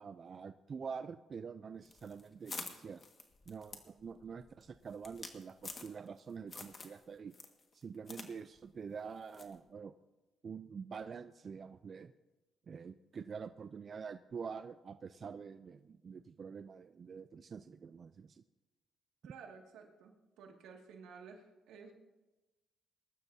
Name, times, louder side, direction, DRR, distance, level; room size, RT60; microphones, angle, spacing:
voice 1, 0.0-3.1 3.5-7.3 7.7-9.9 10.4-12.1 12.7-18.4, right 6 dB, 45° right, 10 dB, 0.4 m, -46 dB
sound 1, 1.9-6.2 6.5-7.0 7.3-8.3 8.6-8.7 9.3-9.6, left 4 dB, 40° left, 1.7 m, -48 dB
voice 2, 19.2-21.9, right 5 dB, 90° right, 1 dB, 2.1 m, -54 dB
21.0 x 12.0 x 2.8 m, 1.1 s
cardioid pair, 90°, 0 cm